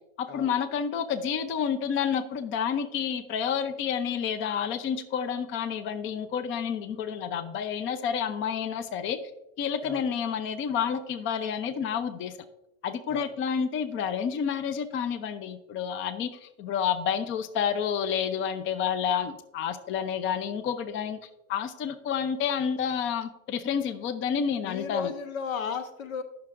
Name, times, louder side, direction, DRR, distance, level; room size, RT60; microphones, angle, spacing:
voice 1, 0.2-9.2 9.6-12.3 12.8-16.3 16.6-21.2 21.5-25.1, left 7 dB, 30° left, 11 dB, 0.6 m, -29 dB
voice 2, 24.6-26.2, left 6 dB, 85° left, 9 dB, 1.1 m, -34 dB
13.0 x 5.9 x 2.5 m, 0.88 s
supercardioid pair, 120°, 39 cm